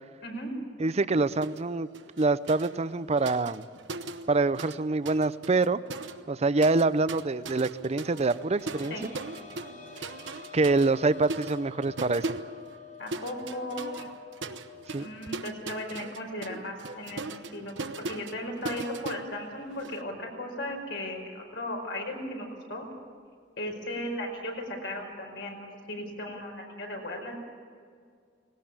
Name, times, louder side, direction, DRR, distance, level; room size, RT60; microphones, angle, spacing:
voice 1, 0.2-0.5 8.9-9.1 13.0-14.1 15.0-17.2 17.5-17.7 18.1-22.9 23.6-24.5 24.8-25.6 25.9-27.3, left 1 dB, 70° left, 2 dB, 5.1 m, -36 dB
voice 2, 0.8-1.9 2.2-3.6 4.3-5.8 6.3-8.9 10.5-12.4 14.9-15.1, right 3 dB, 35° right, 15 dB, 0.6 m, -25 dB
sound 1, 1.4-1.7 1.9-4.8 5.1-20.0, right 3 dB, 75° right, 1.0 m, -40 dB
sound 2, 8.0-19.4 19.8-19.9 21.4-21.5, left 6 dB, 45° left, 2.5 m, -50 dB
19.0 x 18.0 x 8.8 m, 2.2 s
head